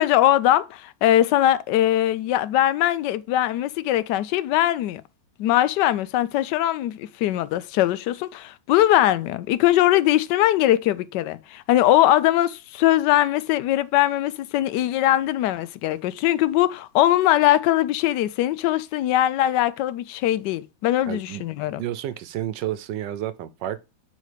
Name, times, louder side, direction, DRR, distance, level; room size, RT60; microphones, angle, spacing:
voice 1, 0.0-5.0 5.4-21.8, left 13 dB, 80° left, 1.2 m, -21 dB
voice 2, 21.1-21.4 21.8-23.8, right 12 dB, 80° right, 1.3 m, -30 dB
8.3 x 4.1 x 4.9 m
omnidirectional pair, 1.9 m